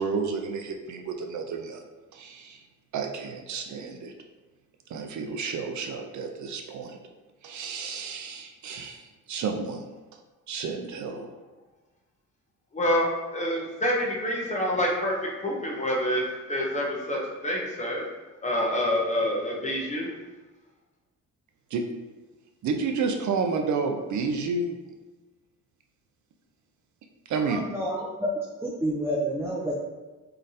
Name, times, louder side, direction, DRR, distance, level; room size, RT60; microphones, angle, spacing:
voice 1, 0.0-1.8 2.1-2.6 2.9-4.1 4.9-7.0 7.4-9.9 10.5-11.3 21.7-21.8 22.6-24.8 27.3-27.6, right 4 dB, 65° right, 4 dB, 0.5 m, -31 dB
voice 2, 12.7-15.2 15.4-18.0 18.4-20.1, equal, 20° left, -2 dB, 0.7 m, -27 dB
voice 3, 27.4-28.3 28.6-29.7, equal, 10° right, -6 dB, 0.4 m, -29 dB
3.8 x 3.2 x 2.7 m, 1.2 s
cardioid pair, 135°, 32 cm